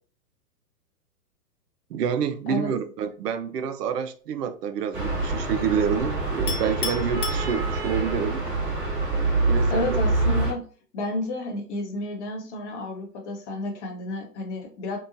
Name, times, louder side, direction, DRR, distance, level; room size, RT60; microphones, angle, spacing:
voice 1, 1.9-8.4 9.5-10.0, right 7 dB, 80° right, 0.5 m, -28 dB
sound 1, 4.9-10.5, right 2 dB, 20° right, 1.1 m, -25 dB
Chink clink, 6.5-8.1, left 5 dB, 70° left, 0.8 m, -34 dB
voice 2, 9.7-10.6 10.9-15.0, left 2 dB, 45° left, 0.9 m, -31 dB
2.8 x 2.2 x 2.5 m
hypercardioid pair, 125°, 48 cm